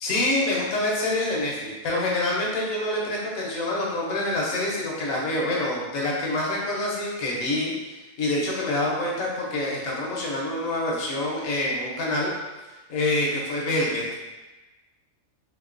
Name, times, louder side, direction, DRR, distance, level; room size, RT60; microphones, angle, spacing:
voice 1, 0.0-7.7 8.2-12.3 12.9-14.0, left 1 dB, 80° left, -4 dB, 1.2 m, -26 dB
3.4 x 2.9 x 2.4 m, 1.1 s
omnidirectional pair, 1.4 m